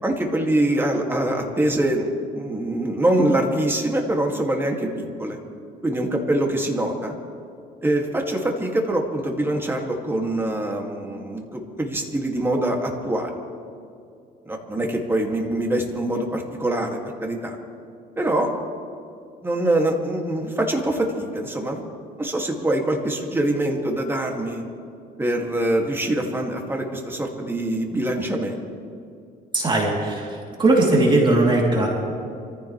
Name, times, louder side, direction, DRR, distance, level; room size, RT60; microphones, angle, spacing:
voice 1, 0.0-2.1 2.3-5.4 5.8-7.1 7.8-13.3 14.5-17.6 18.2-18.5 19.4-21.8 22.2-24.6 25.2-28.6, right 1 dB, 15° right, 1 dB, 2.5 m, -24 dB
voice 2, 29.5-30.3 30.6-31.9, right 2 dB, 30° right, -3 dB, 3.4 m, -18 dB
26.0 x 15.0 x 3.4 m, 2.5 s
cardioid pair, 110°, 17 cm